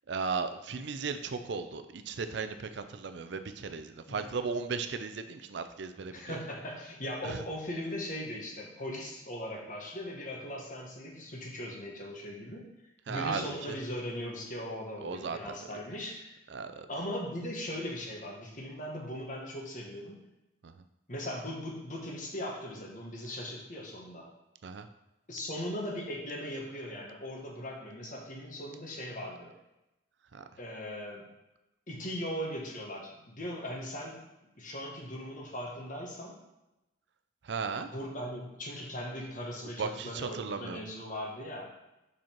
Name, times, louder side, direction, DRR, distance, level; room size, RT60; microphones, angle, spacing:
voice 1, 0.1-6.4 7.2-7.4 13.1-13.8 15.0-15.4 16.5-16.9 20.6-20.7 24.6-24.9 30.3-30.4 37.5-37.9 39.8-40.8, right 5 dB, 65° right, 9 dB, 0.5 m, -36 dB
voice 2, 6.1-12.6 13.1-16.4 16.9-20.2 21.1-24.3 25.3-29.5 30.6-31.3 31.9-34.2 34.5-36.4 37.8-41.7, equal, 45° left, -1 dB, 1.3 m, -39 dB
5.5 x 5.2 x 4.4 m, 0.95 s
head